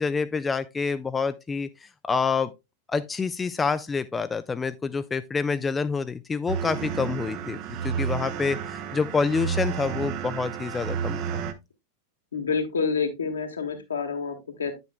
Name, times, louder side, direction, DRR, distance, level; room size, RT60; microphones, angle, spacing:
voice 1, 0.0-2.5 2.9-11.2, left 5 dB, 15° left, 0.4 m, -27 dB
kill me, 6.5-11.5, right 7 dB, 40° right, 0.8 m, -31 dB
voice 2, 12.3-14.7, left 5 dB, 70° left, 1.5 m, -28 dB
9.1 x 7.8 x 2.2 m
figure-of-eight pair, 90°, 0 cm